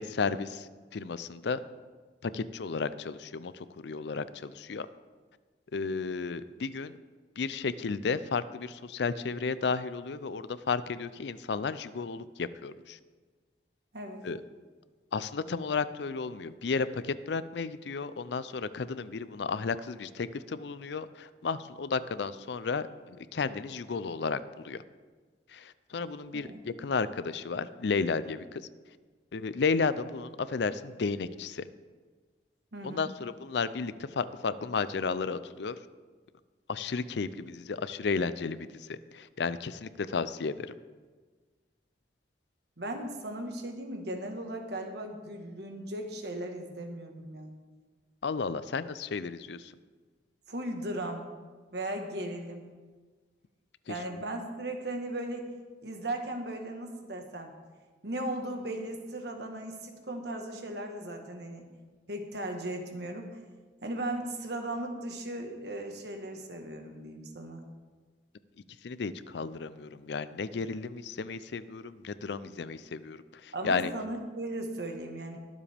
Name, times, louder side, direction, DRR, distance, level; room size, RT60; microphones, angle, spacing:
voice 1, 0.0-1.6 2.2-4.9 5.7-6.9 7.4-13.0 14.2-14.4 15.1-24.8 25.5-28.7 29.3-31.6 32.8-35.7 36.7-40.7 48.2-49.7 53.9-54.2 68.8-73.9, left 4 dB, 70° left, 14 dB, 0.5 m, -33 dB
voice 2, 32.7-33.1 42.8-47.5 50.5-51.2 51.7-52.6 53.9-55.5 55.8-57.5 58.0-61.7 62.1-63.4 63.8-67.6 73.5-75.4, right 1 dB, 60° right, 4 dB, 1.4 m, -37 dB
22.0 x 7.4 x 3.5 m, 1.4 s
head